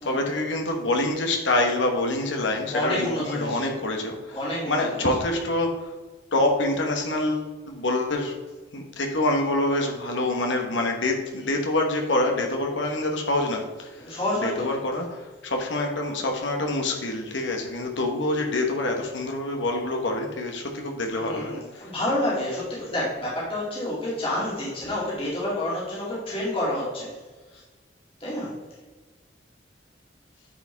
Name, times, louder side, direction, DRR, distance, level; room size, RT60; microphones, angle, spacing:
voice 1, 0.1-4.4 4.7-5.7 6.3-8.3 8.7-13.9 14.4-21.6, left 2 dB, 85° left, 2 dB, 1.2 m, -26 dB
voice 2, 2.7-3.6 4.3-5.1 14.0-14.7 21.2-27.1 27.5-27.6 28.2-28.5, left 1 dB, 30° left, -7 dB, 2.4 m, -29 dB
10.0 x 5.0 x 3.5 m, 1.3 s
head